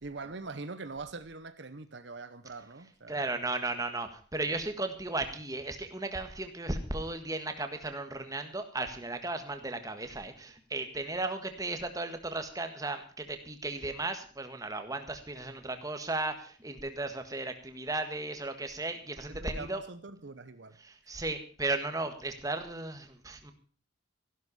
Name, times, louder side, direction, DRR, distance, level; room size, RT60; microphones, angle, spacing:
voice 1, 0.0-3.3 19.3-20.8, right 3 dB, 60° right, 0.9 m, -43 dB
voice 2, 3.1-19.8 21.1-23.5, right 2 dB, 15° right, 1.6 m, -35 dB
14.5 x 12.0 x 5.5 m
head